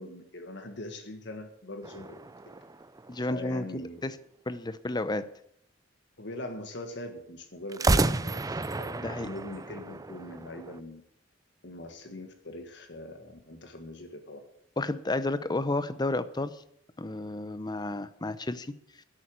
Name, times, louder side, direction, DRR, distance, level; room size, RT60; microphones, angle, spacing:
voice 1, 0.0-2.2 3.2-4.1 6.2-11.0 11.6-14.4, left 1 dB, 65° left, 5 dB, 1.7 m, -42 dB
sound 1, 1.8-3.6 7.7-10.8, right 2 dB, 20° right, 0.5 m, -31 dB
voice 2, 3.1-4.2 4.5-5.3 9.0-9.3 14.8-16.6 17.0-18.7, left 2 dB, 20° left, 14 dB, 0.7 m, -31 dB
11.0 x 8.6 x 8.9 m, 0.69 s
head